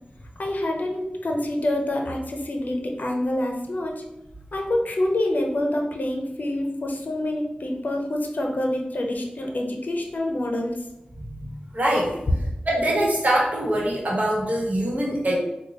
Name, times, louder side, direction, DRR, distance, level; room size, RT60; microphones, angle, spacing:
voice 1, 0.4-4.0 4.5-10.8, left 1 dB, 60° left, 1 dB, 0.6 m, -26 dB
voice 2, 11.2-12.2 12.7-15.3, right 1 dB, 55° right, -3 dB, 1.1 m, -24 dB
3.9 x 2.3 x 2.9 m, 0.95 s
cardioid pair, 40°, 3 cm